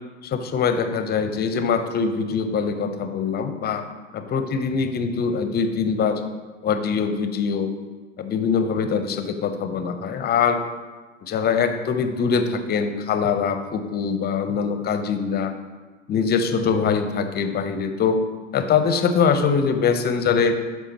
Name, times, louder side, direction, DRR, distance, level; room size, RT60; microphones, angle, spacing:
voice 1, 0.2-3.8 4.1-6.2 6.6-7.7 8.2-10.6 11.2-15.5 16.1-18.2 18.5-20.6, left 6 dB, 25° left, 8 dB, 0.7 m, -23 dB
11.5 x 4.6 x 2.9 m, 1.3 s
figure-of-eight pair, 85°, 38 cm